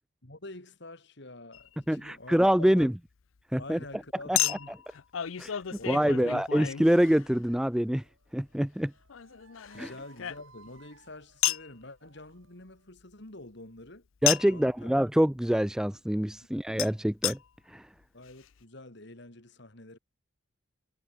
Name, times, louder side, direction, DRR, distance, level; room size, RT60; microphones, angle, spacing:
voice 1, 0.2-2.9 3.6-4.7 5.7-6.3 9.7-14.1 14.5-14.9 18.1-20.0, left 2 dB, 60° left, 3.3 m, -47 dB
Chink clink, 1.5-1.7 4.4-7.5 9.1-10.8 11.4-11.7 14.3-14.6 16.8-16.9 17.2-17.4 18.0-18.1 18.3-18.4, left 13 dB, 85° left, 0.6 m, -32 dB
voice 2, 1.9-2.9 3.5-3.8 4.3-4.4 5.4-5.5 5.9-8.0 8.3-8.9 9.8-9.9 14.2-17.4 17.7-17.9, equal, 5° right, 0.4 m, -25 dB
sound 1, 7.6-12.9, right 4 dB, 80° right, 7.3 m, -61 dB
head